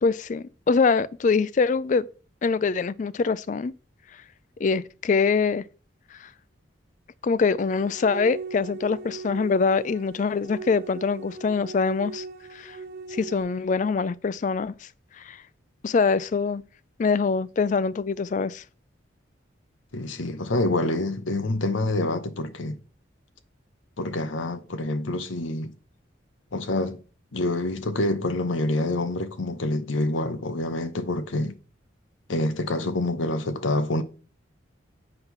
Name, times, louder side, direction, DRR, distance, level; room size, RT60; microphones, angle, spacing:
voice 1, 0.0-2.1 2.4-3.7 4.6-5.6 6.1-6.3 7.2-12.2 12.5-12.8 13.1-14.9 15.2-15.4 15.8-16.6 17.0-18.6, left 4 dB, 40° left, 0.3 m, -24 dB
sound 1, 7.6-13.4, right 4 dB, 55° right, 0.8 m, -39 dB
voice 2, 19.9-22.8 24.0-25.7 26.5-27.0 27.3-31.5 32.3-34.0, left 2 dB, 80° left, 0.8 m, -27 dB
8.0 x 3.8 x 5.7 m
head